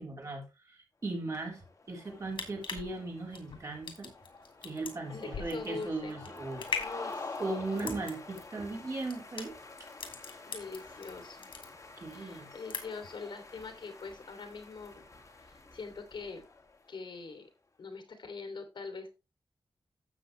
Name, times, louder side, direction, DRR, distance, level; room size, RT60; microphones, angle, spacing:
voice 1, 0.0-4.1 4.6-6.8 7.4-9.5 12.0-12.5, right 2 dB, 40° right, 1 dB, 3.6 m, -38 dB
sound 1, 1.4-17.0, left 3 dB, 40° left, 2.2 m, -48 dB
sound 2, 2.1-11.1 11.4-12.2 12.5-13.1 13.5-13.6, left 5 dB, 85° left, 2.8 m, -41 dB
voice 2, 5.1-6.1 6.7-7.9 10.4-11.5 12.1-15.1 15.4-16.4 16.9-17.5 17.8-19.2, left 4 dB, 65° left, 6 dB, 2.8 m, -43 dB
12.5 x 7.8 x 3.2 m, 0.27 s
wide cardioid pair, 160°, 9 cm